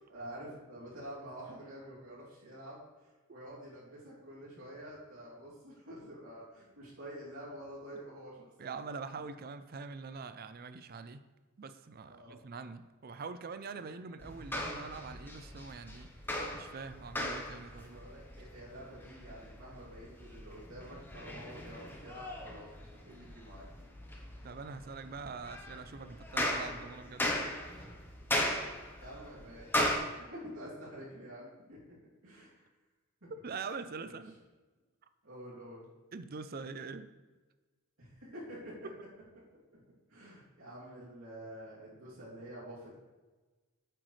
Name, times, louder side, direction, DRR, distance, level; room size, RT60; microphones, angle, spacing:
voice 1, 0.1-8.8 12.1-12.4 13.7-13.9 17.9-23.7 29.0-32.0 32.2-32.6 33.2-33.3 34.0-34.2 35.2-35.9 38.0-38.9 39.3-39.4 39.7-39.8 40.1-43.0, right 1 dB, 75° right, -7 dB, 2.8 m, -48 dB
voice 2, 8.6-11.2 11.6-16.1 16.5-18.1 24.4-27.5 28.5-28.7 33.4-34.3 36.1-37.2, right 4 dB, 45° right, 11 dB, 0.4 m, -44 dB
sound 1, 14.2-30.0, left 1 dB, 10° left, 0.9 m, -38 dB
8.9 x 7.7 x 3.3 m, 1.3 s
head